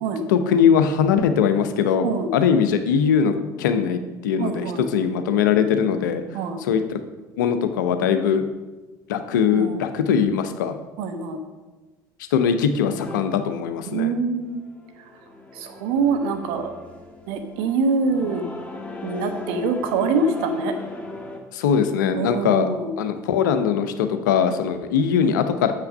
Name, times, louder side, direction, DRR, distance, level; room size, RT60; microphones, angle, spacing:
voice 1, 0.3-6.2 6.6-7.0 7.4-8.4 9.1-10.7 12.3-14.1 21.5-22.7 23.0-25.7, left 7 dB, 75° left, 9 dB, 0.7 m, -21 dB
voice 2, 4.4-4.8 6.3-6.6 9.5-9.8 11.0-11.4 13.9-14.6 15.5-16.7 17.3-18.4 19.0-20.7 22.1-22.9, right 4 dB, 65° right, 6 dB, 1.1 m, -24 dB
sound 1, 13.0-13.2 14.3-21.4, left 2 dB, 10° left, 1.5 m, -38 dB
6.8 x 5.8 x 6.5 m, 1.2 s
figure-of-eight pair, 60°, 10 cm